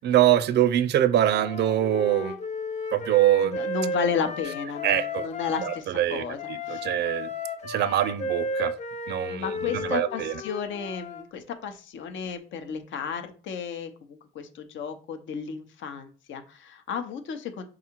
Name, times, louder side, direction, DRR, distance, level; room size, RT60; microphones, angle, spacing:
voice 1, 0.0-2.4 2.9-3.6 4.8-5.3 5.6-6.2 6.7-7.3 7.6-8.7 9.1-9.4 9.7-10.3, right 12 dB, 60° right, 0.4 m, -23 dB
Wind instrument woodwind instrument, 1.2-5.8 6.4-11.2, left 2 dB, 35° left, 0.6 m, -34 dB
voice 2, 3.4-6.4 6.7-6.9 9.3-17.6, left 6 dB, 70° left, 0.7 m, -33 dB
3.7 x 2.4 x 4.4 m
cardioid pair, 90°, 20 cm